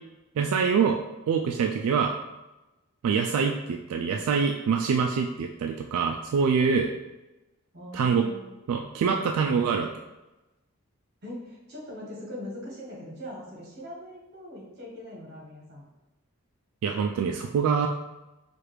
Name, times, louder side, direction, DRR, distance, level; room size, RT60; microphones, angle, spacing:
voice 1, 0.4-1.0 1.3-2.1 3.0-6.9 7.9-8.3 8.7-9.9 16.8-17.9, right 6 dB, 85° right, 5 dB, 0.3 m, -25 dB
voice 2, 7.7-8.5 11.2-15.8, left 1 dB, 45° right, -3 dB, 1.2 m, -41 dB
4.6 x 2.4 x 3.2 m, 1.0 s
head